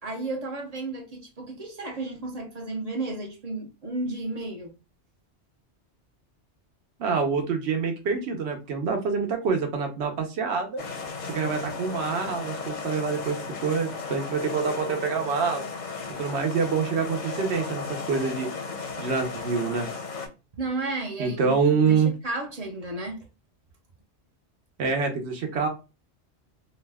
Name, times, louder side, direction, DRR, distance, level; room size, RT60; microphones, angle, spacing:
voice 1, 0.0-4.7 16.0-16.1 20.5-21.5 21.8-23.2, right 2 dB, 45° right, 0.6 m, -33 dB
voice 2, 7.0-10.8 11.3-15.7 16.2-18.5 19.0-19.9 21.2-22.1 24.8-25.7, right 5 dB, 70° right, 1.0 m, -26 dB
sound 1, 10.8-20.3, left 4 dB, 50° left, 0.6 m, -35 dB
2.7 x 2.2 x 3.3 m
omnidirectional pair, 1.1 m